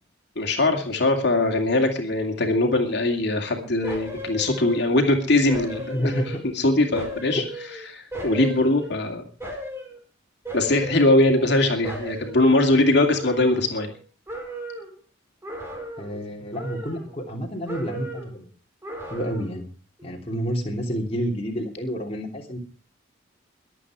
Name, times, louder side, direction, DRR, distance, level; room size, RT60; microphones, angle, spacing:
voice 1, 0.4-6.1 6.4-7.4 7.9-9.2 10.5-13.9, left 2 dB, 55° left, 3 dB, 2.6 m, -21 dB
sound 1, 3.8-5.1 5.5-6.6 6.9-9.0 9.4-10.0 10.4-11.6 11.8-14.0 14.3-15.0 15.4-16.2 16.5-17.4 17.7-18.4 18.8-19.6 20.0-20.1, equal, 15° right, 4.6 m, -36 dB
voice 2, 5.9-6.4 7.3-7.5 16.0-18.5 19.1-19.7 20.0-22.6, equal, 30° left, 0 dB, 3.0 m, -29 dB
23.0 x 8.6 x 4.9 m, 0.38 s
head